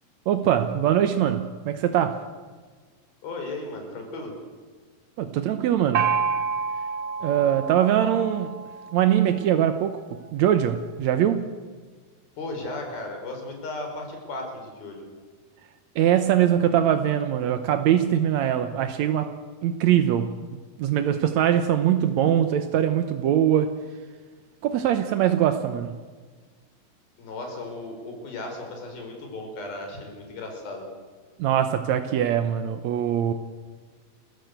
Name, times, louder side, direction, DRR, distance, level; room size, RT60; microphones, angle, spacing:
voice 1, 0.3-2.2 5.2-6.1 7.2-8.6 8.9-10.0 10.3-11.5 15.9-19.3 19.6-20.3 20.8-23.7 24.6-26.0 31.4-33.3, right 10 dB, 75° right, 8 dB, 1.7 m, -22 dB
voice 2, 3.2-4.3 12.4-15.1 27.2-30.9, left 2 dB, 75° left, 3 dB, 6.5 m, -35 dB
Gong, 5.9-9.5, right 6 dB, 50° right, 2.1 m, -29 dB
30.0 x 15.0 x 8.2 m, 1.5 s
omnidirectional pair, 4.3 m